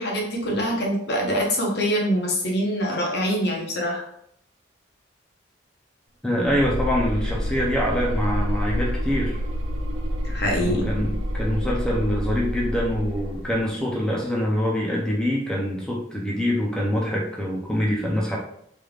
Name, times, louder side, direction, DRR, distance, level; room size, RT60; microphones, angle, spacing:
voice 1, 0.0-4.0 10.2-10.9, equal, 60° left, -1 dB, 0.9 m, -24 dB
voice 2, 6.2-9.4 10.6-18.4, equal, 5° left, -3 dB, 0.4 m, -25 dB
sound 1, 6.4-13.6, equal, 70° right, 0.5 m, -28 dB
3.3 x 3.2 x 2.3 m, 0.70 s
head